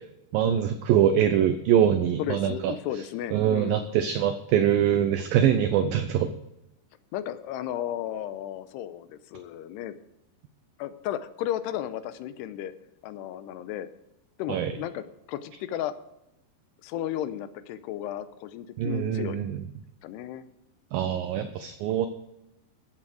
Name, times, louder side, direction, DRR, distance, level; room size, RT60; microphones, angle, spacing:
voice 1, 0.3-2.7 3.3-6.3 14.5-14.7 18.8-19.6 20.9-22.1, right 9 dB, 80° right, 9 dB, 2.1 m, -23 dB
voice 2, 2.2-3.9 7.1-9.9 10.8-12.7 13.0-13.9 14.4-15.9 16.8-19.4 20.0-20.5, left 11 dB, 90° left, 12 dB, 2.8 m, -34 dB
15.0 x 7.7 x 6.2 m, 0.88 s
omnidirectional pair, 4.8 m